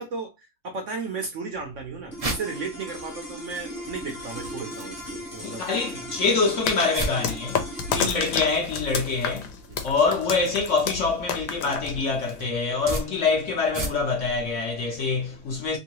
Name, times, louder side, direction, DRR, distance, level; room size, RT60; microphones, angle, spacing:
voice 1, 0.0-6.2 8.0-8.2 9.7-9.9, right 4 dB, 60° right, 0.8 m, -35 dB
sound 1, 1.5-14.3, right 2 dB, 40° right, 0.5 m, -39 dB
sound 2, 2.1-12.5, equal, 15° left, 0.7 m, -40 dB
voice 2, 5.4-9.6 9.8-15.8, left 4 dB, 55° left, 0.9 m, -25 dB
sound 3, 6.7-12.4, left 6 dB, 90° left, 1.3 m, -30 dB
3.0 x 2.7 x 3.0 m
omnidirectional pair, 1.8 m